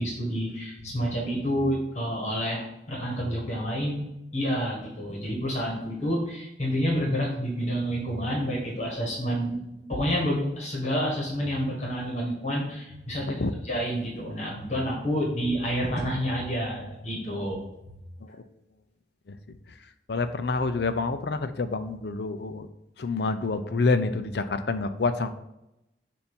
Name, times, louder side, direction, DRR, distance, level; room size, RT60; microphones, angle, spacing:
voice 1, 0.0-4.0 4.3-9.6 9.9-17.6, equal, 40° left, -2 dB, 1.4 m, -29 dB
voice 2, 20.1-22.7 23.0-25.3, left 3 dB, 65° left, 10 dB, 0.5 m, -27 dB
7.0 x 2.7 x 5.3 m, 0.88 s
head